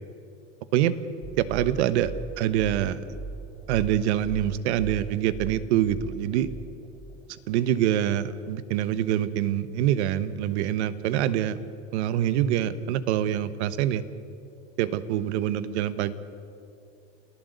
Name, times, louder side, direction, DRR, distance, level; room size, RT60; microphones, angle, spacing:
sound 1, 1.2-8.4, right 3 dB, 10° right, 1.3 m, -40 dB
voice 1, 1.4-3.0 3.7-6.5 7.5-11.6 11.9-14.0 14.8-16.1, right 11 dB, 85° right, 14 dB, 1.3 m, -25 dB
29.5 x 15.0 x 8.1 m, 2.6 s
supercardioid pair, 145°, 33 cm